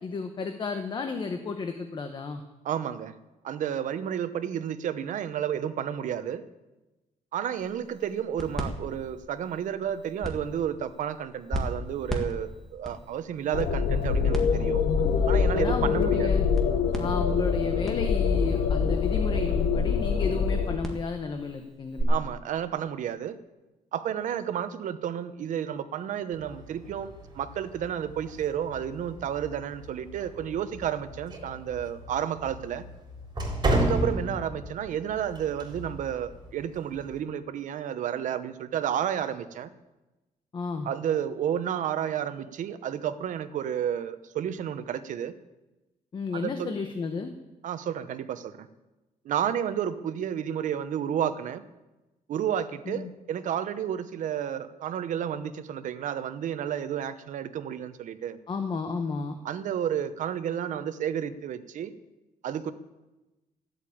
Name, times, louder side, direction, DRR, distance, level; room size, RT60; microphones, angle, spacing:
voice 1, 0.0-2.4 15.5-16.5 17.0-22.2 33.7-33.9 40.5-40.9 46.1-47.3 52.9-53.1 58.5-59.3, left 4 dB, 35° left, 6 dB, 1.0 m, -33 dB
voice 2, 2.6-3.1 3.4-6.4 7.3-14.9 15.3-16.4 22.1-23.4 23.9-32.8 33.7-39.7 40.8-45.3 46.3-46.8 47.6-48.7 49.2-51.6 52.3-58.4 59.4-61.9 62.4-62.7, right 9 dB, 65° right, 11 dB, 0.9 m, -31 dB
sound 1, 7.6-22.0, right 1 dB, 5° left, 2.0 m, -39 dB
sound 2, 13.5-20.8, left 6 dB, 85° left, 1.2 m, -25 dB
sound 3, 26.3-37.2, right 1 dB, 30° right, 3.7 m, -34 dB
14.0 x 8.2 x 8.6 m, 1.1 s
cardioid pair, 145°, 14 cm